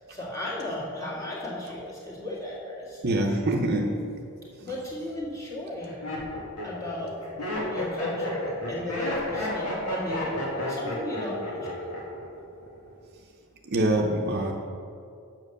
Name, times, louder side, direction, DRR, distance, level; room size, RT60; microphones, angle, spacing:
voice 1, 0.1-3.0 3.9-4.0 4.6-5.9 6.6-7.1 7.7-11.9, left 1 dB, 15° left, -6 dB, 2.0 m, -35 dB
voice 2, 3.0-3.9 13.6-14.5, right 1 dB, 45° right, 1 dB, 0.7 m, -24 dB
Laughter, 4.6-5.0 5.7-12.3 12.5-13.1, left 1 dB, 85° left, 2.1 m, -31 dB
7.5 x 5.9 x 6.6 m, 2.4 s
head